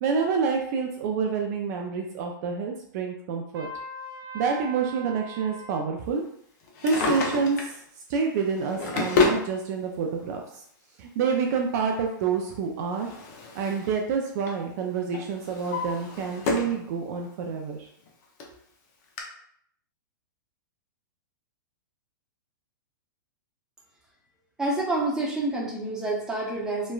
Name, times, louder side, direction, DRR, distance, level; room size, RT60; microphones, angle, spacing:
voice 1, 0.0-3.7 4.3-6.2 6.8-7.8 8.1-10.6 11.0-13.1 13.5-17.9, right 5 dB, 50° right, 1 dB, 0.4 m, -28 dB
Trumpet, 3.5-5.8, right 1 dB, 80° right, 0.9 m, -40 dB
Drawer open or close, 6.6-7.8 8.5-9.5 10.5-10.6 12.4-14.0 14.2-14.6 15.1-16.8 17.2-17.3 18.1-18.2 18.4-18.5 19.2-19.3, left 4 dB, 50° left, 0.6 m, -28 dB
voice 2, 24.6-26.9, right 2 dB, 5° right, -4 dB, 0.7 m, -28 dB
3.0 x 2.1 x 2.3 m, 0.68 s
hypercardioid pair, 125°, 11 cm